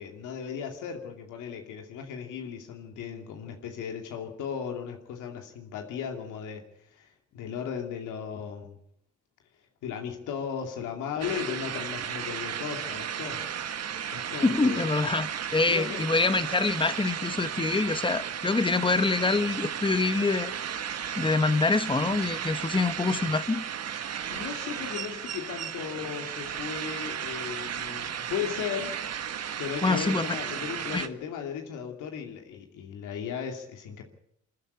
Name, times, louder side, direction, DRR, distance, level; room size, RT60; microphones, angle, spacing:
voice 1, 0.0-6.7 6.9-7.1 7.3-8.8 9.8-13.4 14.1-14.9 15.7-16.0 24.3-29.0 29.6-34.0, left 7 dB, 90° left, 2.6 m, -36 dB
sound 1, 11.2-31.1, right 8 dB, 55° right, 1.5 m, -34 dB
voice 2, 14.4-20.8 21.2-23.6 29.8-30.3 30.9-31.0, left 3 dB, 15° left, 1.0 m, -26 dB
23.5 x 14.0 x 8.6 m
cardioid pair, 90°, 30 cm